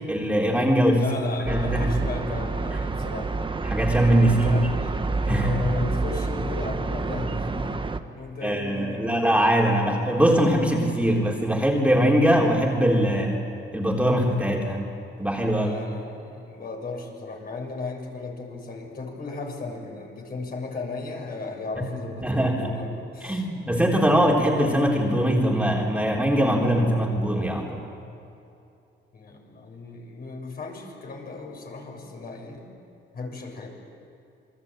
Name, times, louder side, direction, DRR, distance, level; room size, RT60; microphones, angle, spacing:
voice 1, 0.1-1.1 1.5-2.0 2.7-2.8 3.7-4.5 5.3-5.5 8.4-13.4 13.7-14.8 15.2-15.7 22.2-22.7 23.2-27.8, equal, 5° right, -1 dB, 4.1 m, -22 dB
voice 2, 1.0-3.3 4.2-9.2 15.5-23.5 29.1-32.7 33.1-33.7, left 3 dB, 50° left, 1 dB, 6.9 m, -35 dB
sound 1, 1.5-8.0, right 3 dB, 25° right, 1.5 m, -28 dB
29.0 x 22.0 x 9.0 m, 2.7 s
cardioid pair, 90°, 20 cm